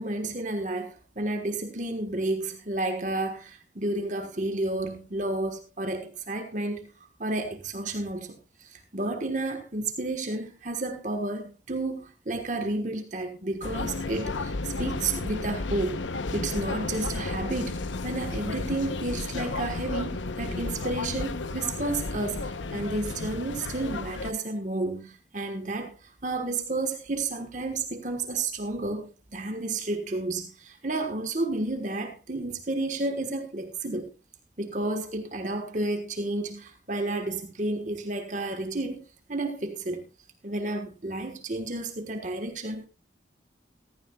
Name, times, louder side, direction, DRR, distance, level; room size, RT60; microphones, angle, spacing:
voice 1, 0.0-6.9 7.2-16.0 16.3-34.1 34.6-39.0 39.3-40.0 40.4-42.9, right 2 dB, 40° right, 1.3 m, -31 dB
sound 1, 13.6-24.3, left 3 dB, 85° left, 0.8 m, -33 dB
15.0 x 14.5 x 2.3 m
head